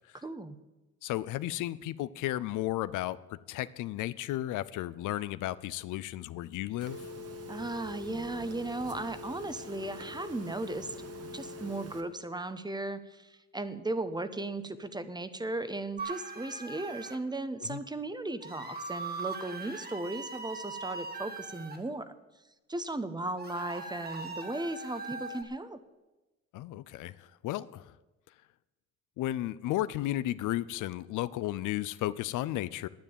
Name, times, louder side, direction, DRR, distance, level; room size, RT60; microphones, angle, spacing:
voice 1, 0.2-0.6 7.5-11.0 11.3-22.1 22.7-25.8, right 2 dB, 15° right, 12 dB, 1.0 m, -36 dB
voice 2, 1.0-7.0 17.6-17.8 26.5-27.9 29.2-32.9, left 15 dB, 90° left, 16 dB, 0.6 m, -34 dB
Telephone, 6.8-12.0, left 1 dB, 55° right, 1.9 m, -44 dB
sound 1, 16.0-17.2 18.4-21.8 23.4-25.4, right 3 dB, 30° right, 2.1 m, -40 dB
9.9 x 9.7 x 8.9 m, 1.1 s
cardioid pair, 90°, 30 cm